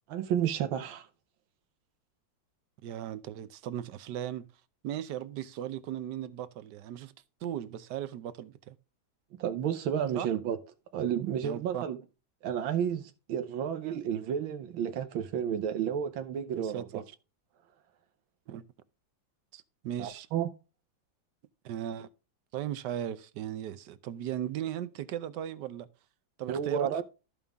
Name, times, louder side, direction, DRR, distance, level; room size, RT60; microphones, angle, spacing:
voice 1, 0.1-1.1 9.4-10.6 10.9-12.0 12.4-17.0 20.0-20.5 26.5-27.0, right 9 dB, 90° right, 1.6 m, -31 dB
voice 2, 2.8-4.5 4.8-7.1 7.4-8.8 10.1-10.3 11.4-11.9 16.5-17.0 18.5-18.6 19.5-20.3 21.6-22.1 22.5-25.9 26.4-27.0, right 11 dB, 70° right, 1.2 m, -37 dB
14.0 x 5.3 x 3.5 m
omnidirectional pair, 2.1 m